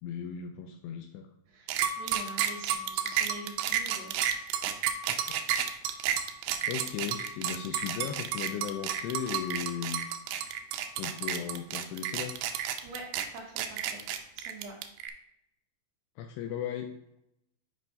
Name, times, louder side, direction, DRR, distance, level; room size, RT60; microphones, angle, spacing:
voice 1, 0.0-1.3 5.1-5.4 6.7-10.0 11.0-12.4 16.2-17.0, left 8 dB, 90° left, 4 dB, 2.3 m, -36 dB
voice 2, 1.5-4.2 12.8-13.1 13.3-14.0 14.4-14.7, right 3 dB, 70° right, -2 dB, 3.8 m, -45 dB
sound 1, 1.7-15.1, right 9 dB, 85° right, 2.3 m, -31 dB
8.9 x 5.5 x 2.7 m, 0.78 s
omnidirectional pair, 5.2 m